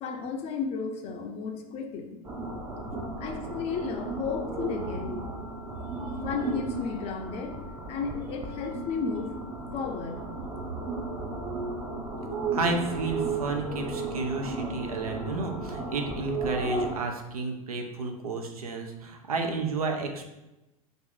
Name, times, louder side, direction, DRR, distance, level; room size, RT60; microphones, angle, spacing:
voice 1, 0.0-2.2 3.2-5.2 6.0-7.6 7.9-9.3 9.7-10.2, left 5 dB, 35° left, 4 dB, 0.5 m, -33 dB
sound 1, 2.2-16.9, right 3 dB, 15° right, 0.6 m, -34 dB
voice 2, 12.5-20.3, right 3 dB, 75° right, 4 dB, 0.6 m, -31 dB
2.6 x 2.5 x 3.8 m, 0.97 s
figure-of-eight pair, 85°, 19 cm